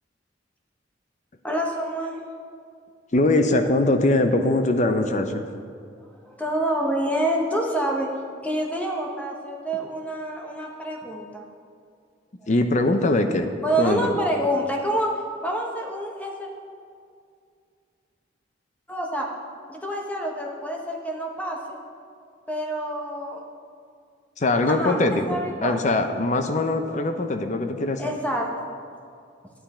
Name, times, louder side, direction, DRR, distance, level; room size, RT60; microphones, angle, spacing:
voice 1, 1.4-2.2 6.1-8.1 8.4-11.5 13.6-15.1 15.4-16.5 18.9-19.3 19.7-21.6 22.5-23.4 24.7-26.0 28.0-28.7, right 1 dB, 10° left, 0 dB, 1.0 m, -27 dB
voice 2, 3.1-5.4 12.5-13.5 13.8-14.2 24.4-28.0, left 2 dB, 40° left, 7 dB, 0.6 m, -22 dB
10.5 x 9.2 x 4.3 m, 2.3 s
head